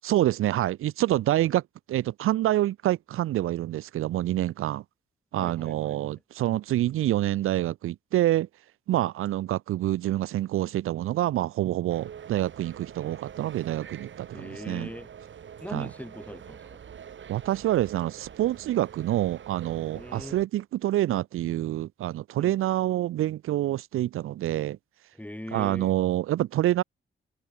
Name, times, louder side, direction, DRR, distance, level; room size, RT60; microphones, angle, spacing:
voice 1, 0.0-1.6 1.9-4.8 5.3-8.5 8.9-14.9 15.7-15.9 17.3-24.8 25.5-26.8, right 14 dB, 85° right, 0.6 m, -27 dB
voice 2, 5.4-6.1 8.9-9.1 14.3-15.1 15.6-16.8 19.9-20.4 22.4-22.6 25.1-25.9, left 1 dB, 5° left, 4.8 m, -40 dB
sound 1, 11.9-20.5, right 8 dB, 65° right, 2.7 m, -45 dB
open air
cardioid pair, 75°, 21 cm